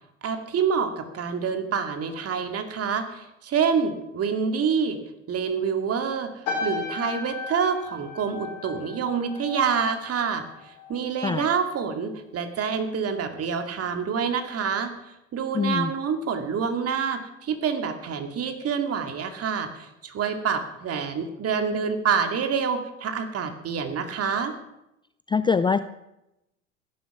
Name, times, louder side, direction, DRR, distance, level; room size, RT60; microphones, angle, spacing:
voice 1, 0.2-5.0 5.3-6.3 6.6-24.5, right 6 dB, 40° right, 7 dB, 2.4 m, -27 dB
sound 1, 6.4-11.1 11.3-11.7, left 4 dB, 75° left, 3.1 m, -35 dB
voice 2, 15.5-15.9 25.3-25.8, left 5 dB, 15° left, 13 dB, 0.4 m, -23 dB
16.0 x 11.0 x 6.1 m, 0.88 s
hypercardioid pair, 70°, 38 cm